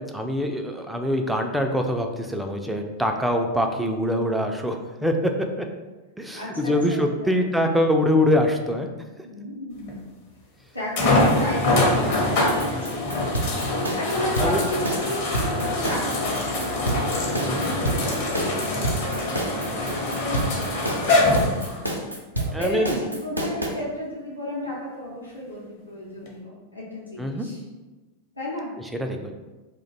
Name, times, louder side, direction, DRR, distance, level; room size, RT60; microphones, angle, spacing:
voice 1, 0.0-5.3 5.6-5.7 6.2-8.9 14.4-14.6 17.4-17.7 22.5-23.1 27.2-27.5 29.0-29.3, left 1 dB, 5° right, 4 dB, 0.3 m, -24 dB
voice 2, 6.4-7.4 9.2-10.0 10.7-13.4 13.9-17.0 17.3-17.7 18.3-18.5 19.0-20.7 21.0-21.8 22.3-27.6 28.3-28.8, left 1 dB, 85° left, -7 dB, 0.7 m, -33 dB
sound 1, 9.9-10.0 11.0-22.0 22.7-22.8 26.3-26.4, left 2 dB, 50° left, 0.7 m, -24 dB
sound 2, 12.4-23.7, right 1 dB, 85° right, 0.5 m, -28 dB
2.5 x 2.2 x 3.9 m, 1.2 s
figure-of-eight pair, 90°, 0 cm